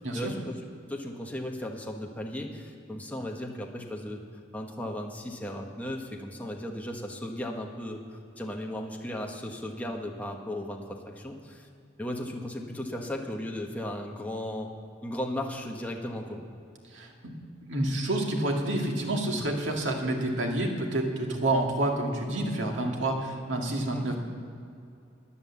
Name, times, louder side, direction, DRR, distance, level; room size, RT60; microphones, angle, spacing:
voice 1, 0.1-0.6 0.9-4.2 4.5-11.7 12.0-14.7 15.0-16.4 23.9-24.1, left 1 dB, 10° left, 0 dB, 1.2 m, -36 dB
voice 2, 16.9-17.3 17.6-24.2, right 1 dB, 85° right, 1 dB, 2.0 m, -28 dB
11.5 x 10.5 x 7.2 m, 2.5 s
head